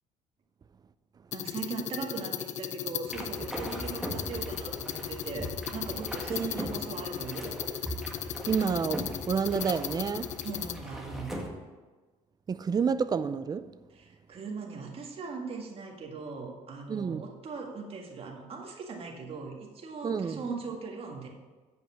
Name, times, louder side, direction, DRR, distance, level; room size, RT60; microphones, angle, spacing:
sound 1, 1.3-10.8, left 11 dB, 60° left, 0.6 m, -37 dB
voice 1, 1.3-7.5 10.4-11.3 13.9-21.3, right 4 dB, 45° right, 1.8 m, -39 dB
sound 2, 3.1-11.5, equal, 5° right, 1.8 m, -40 dB
voice 2, 6.3-6.7 8.5-10.3 12.5-13.7 16.9-17.2 20.0-20.4, right 6 dB, 30° right, 0.4 m, -29 dB
7.9 x 5.4 x 7.2 m
cardioid pair, 95°, 14 cm